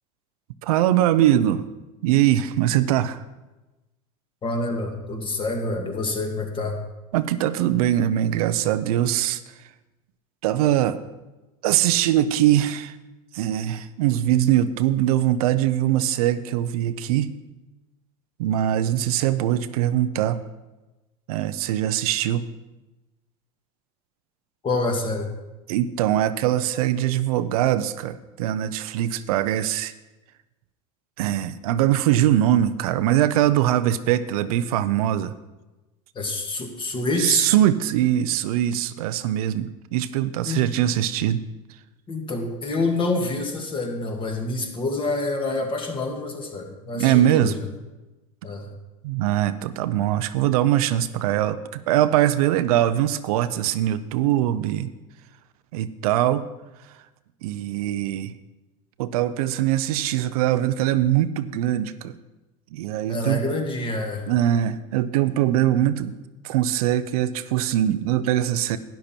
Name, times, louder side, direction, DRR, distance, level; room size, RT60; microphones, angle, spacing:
voice 1, 0.6-1.6 2.0-3.2 7.1-9.4 10.4-11.0 11.6-13.0 13.3-17.4 18.4-20.4 21.3-22.4 25.7-29.9 31.2-35.3 37.2-41.4 46.9-47.5 49.0-54.9 55.7-56.5 57.4-58.3 59.0-62.2 62.7-63.4 64.3-66.1 66.4-68.8, right 12 dB, 80° right, 12 dB, 0.7 m, -22 dB
voice 2, 4.4-6.8 24.6-25.3 36.2-37.5 40.4-40.6 42.1-47.6 48.4-48.7 63.1-64.3, left 2 dB, 25° left, 3 dB, 2.0 m, -27 dB
12.0 x 10.5 x 4.4 m, 1.1 s
supercardioid pair, 120°, 19 cm